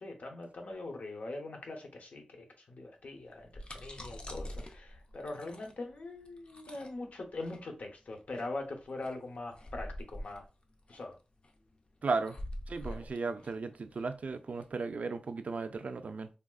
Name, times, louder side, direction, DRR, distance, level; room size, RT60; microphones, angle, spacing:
voice 1, 0.0-10.5 10.9-11.2 12.9-13.0, left 2 dB, 85° left, 0.7 m, -42 dB
sound 1, 3.2-14.7, left 1 dB, 45° left, 0.4 m, -46 dB
voice 2, 12.0-12.4 12.7-16.3, right 4 dB, 75° right, 0.3 m, -35 dB
3.4 x 2.3 x 2.3 m
wide cardioid pair, 90°, 2 cm